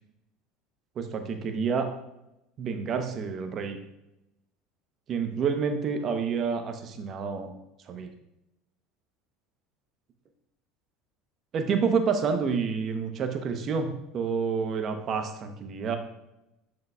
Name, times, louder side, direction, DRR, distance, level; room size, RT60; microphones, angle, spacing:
voice 1, 1.0-1.9 2.6-3.8 5.1-7.5 7.9-8.1 11.5-16.0, right 5 dB, 45° right, 6 dB, 0.9 m, -28 dB
6.4 x 6.4 x 2.4 m, 0.88 s
hypercardioid pair, 80°, 0 cm